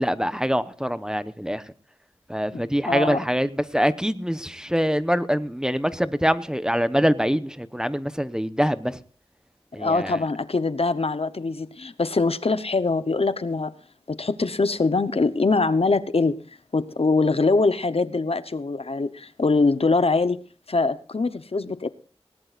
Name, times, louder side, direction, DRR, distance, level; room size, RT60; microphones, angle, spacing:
voice 1, 0.0-1.6 2.3-9.0 9.7-10.2, equal, 5° right, 0.9 m, -24 dB
voice 2, 2.9-3.2 9.8-13.7 14.1-16.4 16.7-20.4 20.7-21.9, left 3 dB, 65° left, 0.9 m, -23 dB
19.5 x 18.5 x 2.5 m
wide cardioid pair, 55°, 11 cm